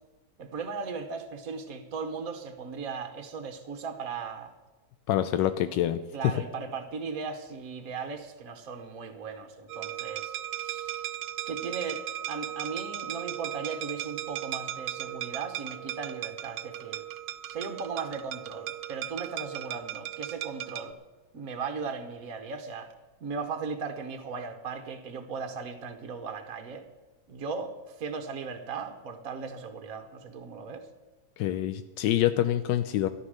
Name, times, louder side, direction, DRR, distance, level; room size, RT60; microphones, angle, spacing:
voice 1, 0.4-4.5 5.3-5.4 6.1-11.1 11.5-12.0 12.3-17.0 17.5-21.0 21.3-22.9 23.2-26.9 27.3-30.9, right 5 dB, 55° right, 5 dB, 1.4 m, -37 dB
voice 2, 5.1-6.3 31.4-33.1, left 12 dB, 85° left, 11 dB, 1.3 m, -26 dB
sound 1, 9.7-20.9, right 12 dB, 90° right, 1.5 m, -37 dB
13.5 x 11.5 x 6.5 m, 1.3 s
omnidirectional pair, 1.9 m